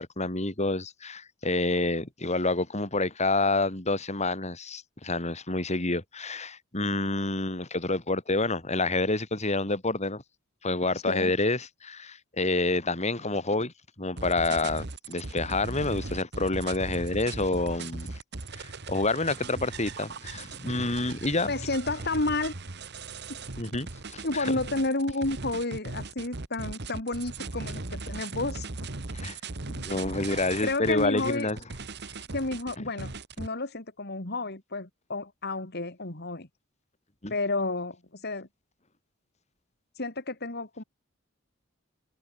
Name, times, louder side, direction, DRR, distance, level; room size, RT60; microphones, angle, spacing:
voice 1, 0.0-10.2 10.6-13.7 14.0-18.1 18.5-21.5 23.6-24.5 29.1-29.4 29.7-31.6 37.2-37.3, left 2 dB, 35° left, 4.1 m, -28 dB
voice 2, 10.9-11.3 21.5-22.5 23.3-23.4 24.2-28.7 30.6-31.5 32.3-36.5 37.3-38.5 40.0-40.8, left 2 dB, 55° left, 3.4 m, -31 dB
sound 1, 14.2-33.5, right 3 dB, 60° right, 1.6 m, -38 dB
head